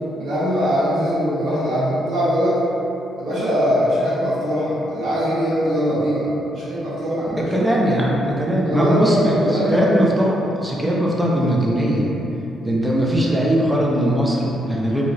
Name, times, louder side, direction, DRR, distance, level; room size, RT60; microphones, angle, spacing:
voice 1, 0.2-2.6 3.2-7.5 8.6-9.8, equal, 65° right, -11 dB, 1.4 m, -21 dB
voice 2, 7.5-12.1 12.6-15.0, equal, 10° right, -3 dB, 0.6 m, -20 dB
2.9 x 2.2 x 3.9 m, 2.9 s
cardioid pair, 90°, 0 cm